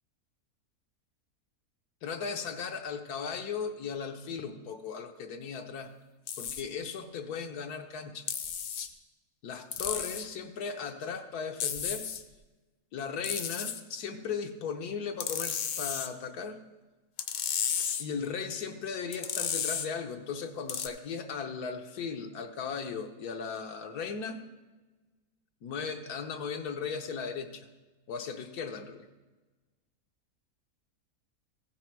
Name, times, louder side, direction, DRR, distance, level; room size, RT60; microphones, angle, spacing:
voice 1, 2.0-5.9 6.4-8.3 9.4-12.1 12.9-16.6 17.7-24.4 25.6-27.7 28.1-29.1, left 6 dB, 80° left, 5 dB, 1.4 m, -37 dB
sound 1, 6.3-6.6 8.3-8.9 9.7-10.3 11.6-12.2 13.2-13.8 15.2-16.1 17.2-18.0 19.1-19.9 20.7-20.9, left 8 dB, 60° left, 0.9 m, -33 dB
15.5 x 6.3 x 4.5 m, 1.2 s
omnidirectional pair, 1.6 m